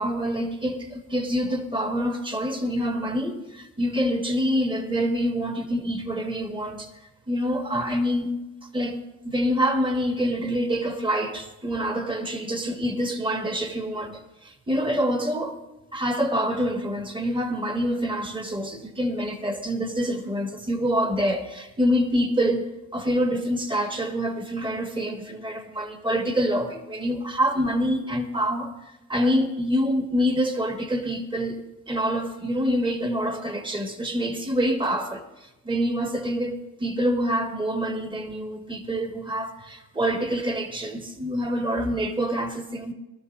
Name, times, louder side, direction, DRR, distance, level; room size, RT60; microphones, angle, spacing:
voice 1, 0.0-6.9 7.3-8.4 8.7-15.6 15.9-42.9, equal, 15° right, 1.8 m, -26 dB
23.5 x 13.0 x 2.7 m
cardioid pair, 90°, 30 cm